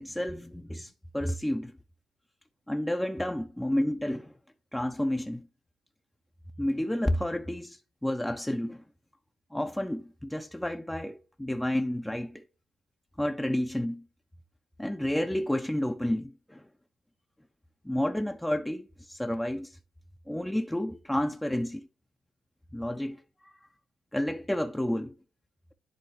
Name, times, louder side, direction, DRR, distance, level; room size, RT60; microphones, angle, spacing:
voice 1, 0.0-1.7 2.7-4.3 4.7-5.4 6.6-8.8 9.5-12.4 13.2-14.0 14.8-16.6 17.8-19.8 20.3-21.9 22.7-23.2 24.1-25.1, left 1 dB, 5° left, 0.4 m, -30 dB
10.5 x 3.7 x 3.0 m
cardioid pair, 90°, 0 cm